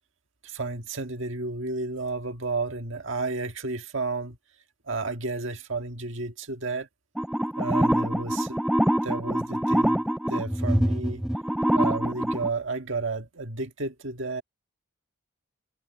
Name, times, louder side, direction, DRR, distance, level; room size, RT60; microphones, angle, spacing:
voice 1, 0.4-4.4 4.9-6.9 7.6-8.6 9.0-11.2 11.7-14.4, right 3 dB, 65° right, 1.7 m, -32 dB
sound 1, 7.2-12.5, equal, ahead, 0.3 m, -25 dB
head